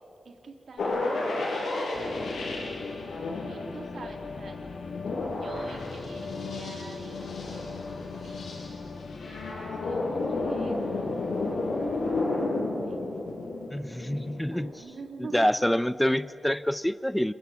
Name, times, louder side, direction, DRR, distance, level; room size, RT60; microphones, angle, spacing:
voice 1, 0.2-2.9 3.4-4.6 5.3-7.8 8.2-11.5 12.8-13.0 13.8-15.5, right 4 dB, 75° right, 4 dB, 3.3 m, -46 dB
sound 1, 0.8-14.7, left 2 dB, 85° left, 6.5 m, -32 dB
sound 2, 1.9-12.2, left 4 dB, 70° left, 1.5 m, -40 dB
voice 2, 13.7-14.7 15.3-17.3, equal, 5° left, 15 dB, 0.6 m, -26 dB
27.5 x 24.0 x 8.5 m, 2.8 s
cardioid pair, 60°, 0 cm